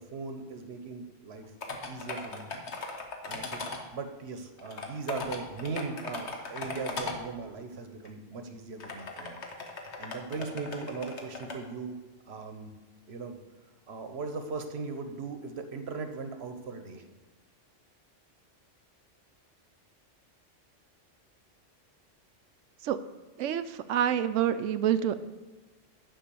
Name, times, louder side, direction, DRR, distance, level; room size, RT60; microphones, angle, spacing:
voice 1, 0.0-1.5 1.9-2.5 3.2-9.4 10.0-12.7 13.1-13.4 13.9-17.0, right 4 dB, 60° right, 7 dB, 1.1 m, -39 dB
sound 1, 1.6-3.8 4.6-7.2 8.0-8.1 8.8-11.6, left 3 dB, 65° left, 1.5 m, -38 dB
voice 2, 23.4-25.1, right 10 dB, 80° right, 12 dB, 1.0 m, -27 dB
10.5 x 5.4 x 6.9 m, 1.2 s
omnidirectional pair, 1.3 m